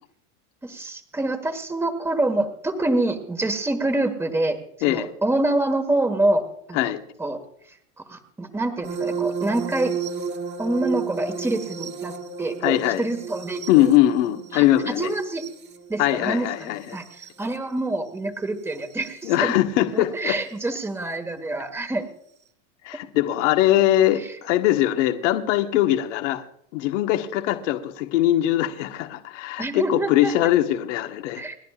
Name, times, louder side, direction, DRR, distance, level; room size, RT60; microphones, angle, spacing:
voice 1, 0.6-4.6 4.9-6.9 7.2-7.4 8.1-9.9 10.6-13.9 14.5-14.6 15.0-15.4 15.9-17.0 17.4-19.5 19.9-22.1 24.2-24.3 29.6-30.3 31.4-31.6, right 2 dB, 5° right, 7 dB, 1.5 m, -26 dB
sound 1, 8.8-17.5 18.8-19.1 20.8-20.9, right 6 dB, 30° right, 1.6 m, -33 dB
voice 2, 12.6-13.1 13.7-15.1 16.0-17.0 19.2-20.4 22.8-26.4 26.7-31.4, left 13 dB, 70° left, 5 dB, 1.5 m, -21 dB
30.0 x 10.5 x 2.5 m, 0.69 s
supercardioid pair, 130°, 37 cm